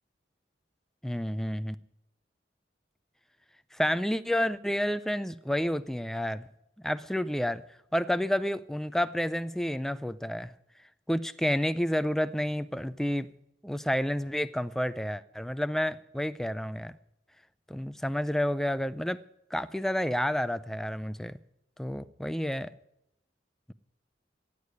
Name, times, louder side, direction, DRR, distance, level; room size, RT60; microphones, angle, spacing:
voice 1, 1.0-1.8 3.7-6.5 6.8-7.6 7.9-10.5 11.1-13.3 13.6-16.9 17.7-19.2 19.5-21.4 21.8-22.7, equal, ahead, 0.4 m, -30 dB
14.5 x 8.5 x 9.4 m
head